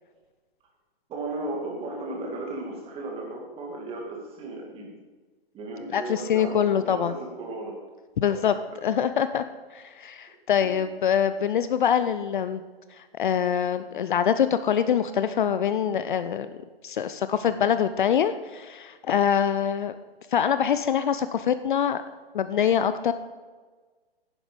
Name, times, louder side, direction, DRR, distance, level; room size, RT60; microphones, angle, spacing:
voice 1, 1.1-4.9 5.5-7.8 10.6-10.7, right 2 dB, 20° right, 0 dB, 2.3 m, -35 dB
voice 2, 5.9-7.1 8.2-8.6 8.8-9.4 9.7-12.6 13.0-16.6 16.8-19.9 20.3-22.0 22.3-23.1, left 8 dB, 50° left, 12 dB, 0.6 m, -24 dB
10.0 x 9.9 x 5.1 m, 1.4 s
figure-of-eight pair, 130°, 31 cm